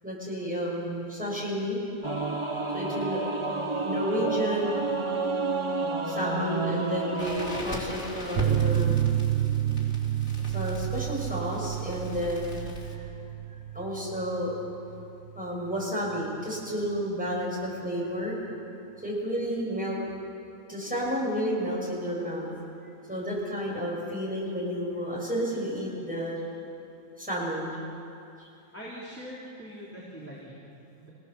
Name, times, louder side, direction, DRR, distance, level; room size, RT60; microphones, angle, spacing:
voice 1, 0.0-1.8 2.7-3.2 3.8-4.9 6.0-8.9 10.4-13.1 13.7-14.5 15.3-18.4 19.0-20.1 20.7-22.5 23.1-26.4 27.2-27.8 28.4-28.5, equal, 5° right, -5 dB, 6.7 m, -31 dB
Singing / Musical instrument, 2.0-7.6, right 3 dB, 25° right, 1.2 m, -30 dB
voice 2, 2.7-3.1 17.7-17.8 23.6-23.7 28.7-31.1, equal, 10° left, -7 dB, 3.8 m, -43 dB
Crackle, 7.2-13.0, left 1 dB, 85° left, 3.6 m, -40 dB
sound 1, 8.4-15.5 15.7-15.8 16.2-16.3, right 11 dB, 60° right, 1.0 m, -29 dB
29.0 x 17.0 x 7.1 m, 2.7 s
omnidirectional pair, 1.4 m